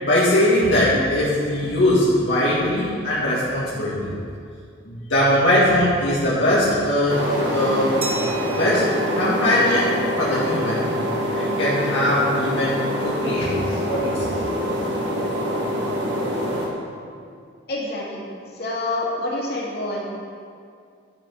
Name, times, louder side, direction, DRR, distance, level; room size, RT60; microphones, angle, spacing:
voice 1, 0.0-4.1 4.9-7.2 7.5-7.9 8.6-8.9 9.2-10.9 11.3-14.2, left 1 dB, 80° left, -9 dB, 1.9 m, -21 dB
sound 1, 7.1-16.7, equal, 60° right, 1.7 m, -25 dB
Glass, 8.0-10.5, right 3 dB, 30° right, 1.0 m, -36 dB
voice 2, 17.7-18.2 18.6-20.0, left 2 dB, 50° left, -5 dB, 2.3 m, -27 dB
11.5 x 5.8 x 6.0 m, 2.2 s
head